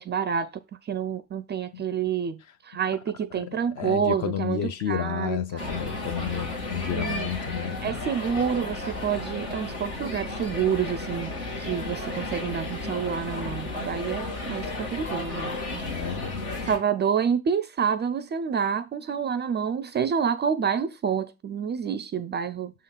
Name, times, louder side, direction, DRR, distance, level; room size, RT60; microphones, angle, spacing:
voice 1, 0.0-2.4 2.6-5.8 6.9-7.3 7.8-11.3 11.6-15.8 16.6-22.7, right 7 dB, 25° right, 0.4 m, -28 dB
voice 2, 3.3-8.0 15.9-16.4, left 9 dB, 40° left, 0.6 m, -31 dB
sound 1, 5.6-16.8, left 2 dB, 65° left, 1.9 m, -33 dB
6.6 x 3.7 x 5.2 m
figure-of-eight pair, 50°, 45 cm